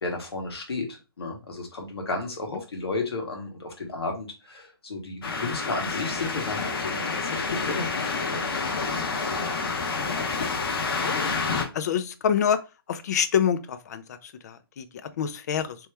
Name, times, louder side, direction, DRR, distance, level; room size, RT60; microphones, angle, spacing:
voice 1, 0.0-8.6, left 3 dB, 80° left, 1.5 m, -33 dB
sound 1, 5.2-11.6, left 4 dB, 65° left, 1.1 m, -28 dB
voice 2, 10.9-11.3 11.7-12.6 12.9-15.8, left 8 dB, 45° left, 0.4 m, -27 dB
3.2 x 3.1 x 3.3 m
hypercardioid pair, 150°, 13 cm